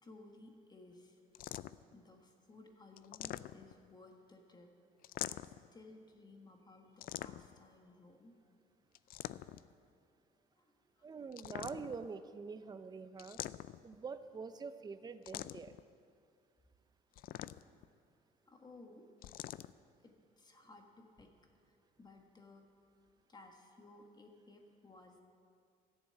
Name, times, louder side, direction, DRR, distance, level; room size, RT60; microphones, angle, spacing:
voice 1, 0.0-1.2 1.9-4.7 5.3-8.5 10.5-11.1 18.5-19.1 20.0-21.3 21.7-22.6 23.3-25.2, left 2 dB, 25° left, 3 dB, 1.5 m, -58 dB
sound 1, 1.3-1.9 3.0-3.9 5.0-5.7 7.0-7.6 8.9-9.7 11.3-12.1 13.2-14.0 15.3-15.8 17.1-17.9 19.2-19.7, left 13 dB, 60° left, 0.4 m, -44 dB
voice 2, 11.0-13.4 13.8-15.8, right 5 dB, 25° right, 11 dB, 0.6 m, -45 dB
13.0 x 7.2 x 8.9 m, 2.3 s
cardioid pair, 110°, 17 cm